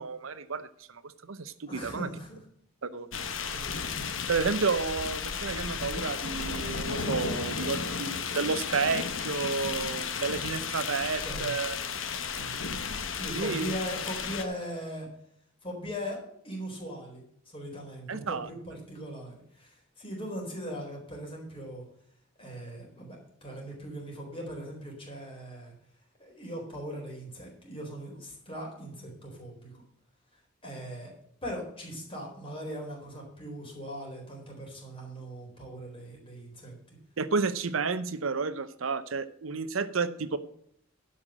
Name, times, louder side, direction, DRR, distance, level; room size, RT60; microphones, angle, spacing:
voice 1, 0.0-2.1 2.8-3.1 4.3-11.7 13.3-13.7 18.1-18.5 37.2-40.4, right 4 dB, 85° right, 13 dB, 0.8 m, -31 dB
voice 2, 1.7-2.4 3.1-3.8 11.2-11.5 12.3-12.6 13.1-15.1 15.6-16.2 16.4-21.9 22.4-25.7 26.2-29.8 30.6-31.1 31.4-37.0, equal, 30° left, 0 dB, 4.2 m, -40 dB
sound 1, 3.1-14.4, left 6 dB, 70° left, 1.1 m, -34 dB
11.5 x 5.8 x 7.4 m, 0.68 s
head